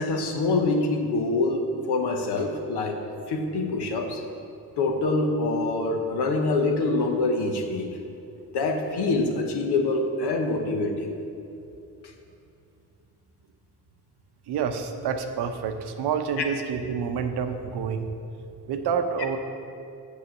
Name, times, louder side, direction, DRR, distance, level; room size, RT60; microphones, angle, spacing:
voice 1, 0.0-3.0 3.3-4.2 4.8-7.9 8.5-11.1 16.4-16.5, left 3 dB, 85° left, 3 dB, 0.9 m, -25 dB
voice 2, 14.5-18.1 18.7-19.4, right 6 dB, 80° right, 7 dB, 0.7 m, -28 dB
7.0 x 4.9 x 6.6 m, 2.7 s
supercardioid pair, 45°, 39 cm